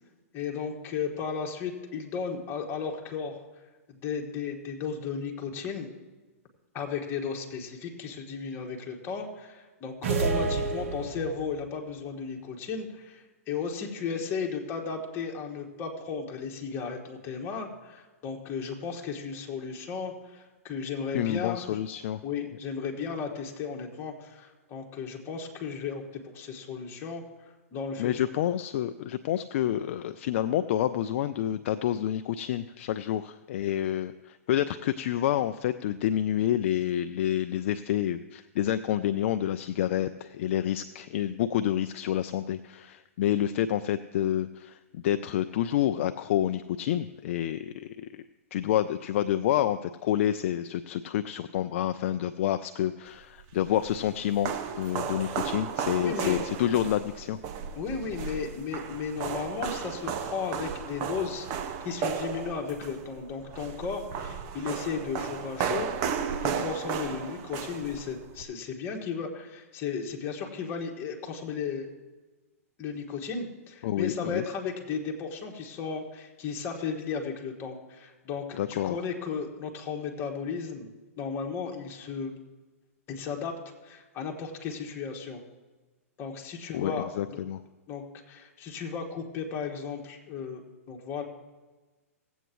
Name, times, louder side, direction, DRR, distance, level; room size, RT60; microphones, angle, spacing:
voice 1, 0.3-3.4 3.9-5.9 6.7-21.8 22.2-28.1 56.0-56.4 57.8-61.5 61.8-65.9 66.4-71.9 72.8-80.9 81.2-82.3 83.1-83.5 83.8-85.4 86.2-87.4 87.9-91.2, left 6 dB, 30° left, 1 dB, 1.7 m, -35 dB
sound 1, 10.0-11.6, right 3 dB, 60° right, 1.3 m, -29 dB
voice 2, 21.1-22.2 28.0-48.2 48.5-54.5 54.8-57.4 73.8-74.4 78.6-79.0 86.7-87.6, left 11 dB, 55° left, 11 dB, 0.4 m, -28 dB
sound 2, 53.4-68.4, right 7 dB, 40° right, 0.8 m, -34 dB
17.0 x 8.1 x 3.1 m, 1.2 s
hypercardioid pair, 120°, 8 cm